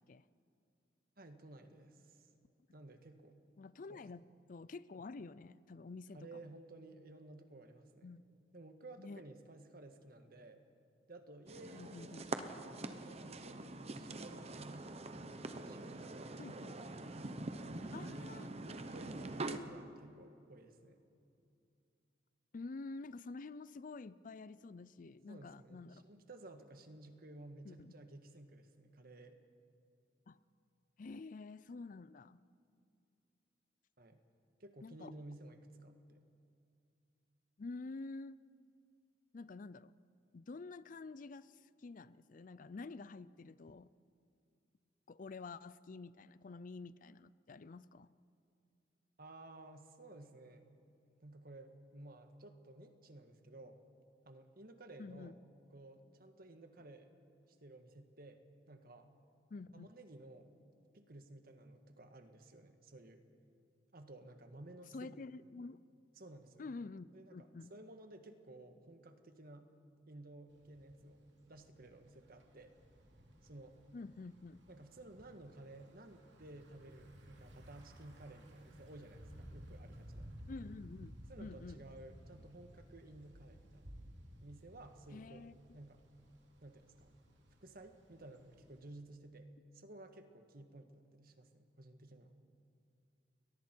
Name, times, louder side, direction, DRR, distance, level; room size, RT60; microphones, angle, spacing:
voice 1, 1.2-2.3 2.7-3.4 3.9-4.0 6.1-8.1 8.5-10.6 11.1-13.6 14.0-15.1 15.4-16.3 17.5-18.2 18.7-21.0 25.3-29.4 34.0-34.2 34.6-36.2 49.2-50.7 51.2-53.8 54.2-55.4 55.7-57.1 57.5-58.4 58.7-59.1 59.7-60.5 60.9-63.2 63.9-65.2 66.2-66.7 67.1-69.7 70.1-72.7 73.4-73.8 74.7-80.3 81.3-83.9 84.4-86.0 86.6-87.1 87.6-92.3, right 2 dB, 55° right, 7 dB, 1.6 m, -55 dB
voice 2, 3.6-6.5 8.0-8.2 9.0-9.2 11.7-12.2 16.4-16.7 17.9-18.5 22.5-26.0 27.6-27.9 30.3-30.4 31.0-32.4 34.8-35.1 37.6-38.4 39.3-39.9 40.3-43.9 45.1-48.1 55.0-55.3 59.5-59.9 64.9-65.8 66.6-67.7 73.9-74.6 80.5-81.8 85.1-85.8, left 3 dB, 45° left, 17 dB, 0.4 m, -49 dB
sound 1, 11.5-19.6, right 2 dB, 35° right, 1.0 m, -44 dB
Thunder / Bicycle, 70.5-88.9, equal, 80° right, 2.7 m, -57 dB
30.0 x 22.0 x 4.5 m, 2.5 s
head